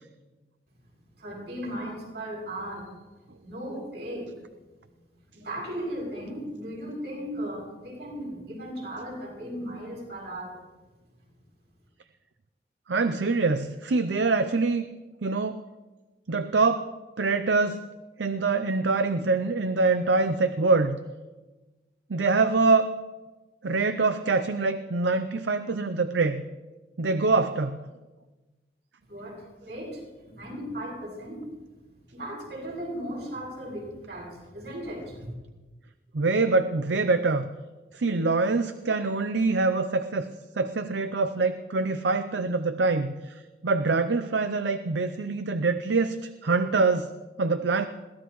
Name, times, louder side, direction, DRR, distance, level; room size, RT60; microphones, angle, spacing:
voice 1, 1.2-2.9 3.4-4.3 5.3-10.6 29.1-31.4 32.1-35.3, equal, 70° right, -2 dB, 6.9 m, -36 dB
voice 2, 12.9-14.8 15.2-15.6 16.3-16.9 17.2-17.9 18.2-21.0 22.1-22.9 23.6-26.4 27.0-27.8 36.1-37.5 37.9-40.3 40.6-47.1 47.4-47.9, right 3 dB, 85° right, 10 dB, 0.6 m, -24 dB
22.0 x 17.0 x 3.1 m, 1.2 s
head